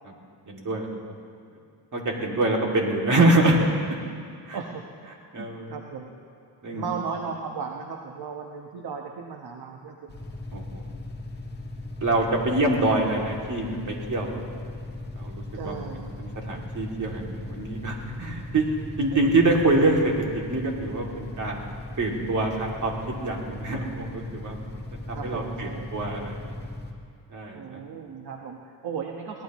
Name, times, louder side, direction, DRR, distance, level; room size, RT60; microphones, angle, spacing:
voice 1, 0.5-0.9 1.9-3.6 4.5-4.6 5.3-5.7 6.6-6.9 10.5-10.8 12.0-14.4 15.2-18.7 19.0-21.6 22.0-24.8 25.1-26.5 27.3-27.8, right 2 dB, 45° right, -1 dB, 2.8 m, -25 dB
voice 2, 2.2-2.5 4.5-6.1 6.7-10.1 15.5-16.1 25.1-25.9 27.5-29.4, right 6 dB, 60° right, 1 dB, 1.3 m, -36 dB
sound 1, 10.1-26.9, left 2 dB, 25° left, 1.7 m, -38 dB
22.5 x 18.0 x 3.1 m, 2.3 s
cardioid pair, 125°, 43 cm